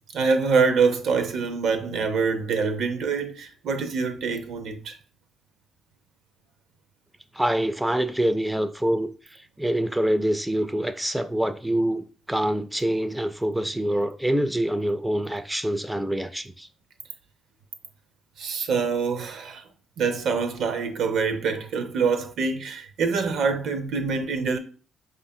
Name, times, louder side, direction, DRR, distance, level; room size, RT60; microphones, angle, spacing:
voice 1, 0.1-5.0 18.4-19.7 20.0-24.6, right 5 dB, 70° right, 0.5 m, -25 dB
voice 2, 7.3-16.7, right 1 dB, 5° right, 0.4 m, -25 dB
4.9 x 2.5 x 2.6 m
supercardioid pair, 50°, 0 cm